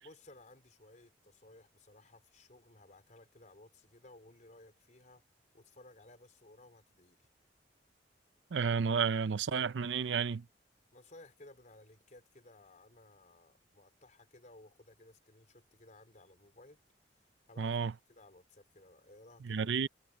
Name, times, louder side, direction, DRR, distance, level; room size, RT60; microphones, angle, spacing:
voice 1, 0.0-5.2 5.5-7.2 10.9-16.8 17.5-19.7, left 2 dB, 45° left, 3.9 m, -58 dB
voice 2, 8.5-10.4 17.6-17.9 19.4-19.9, right 6 dB, 85° right, 0.5 m, -31 dB
head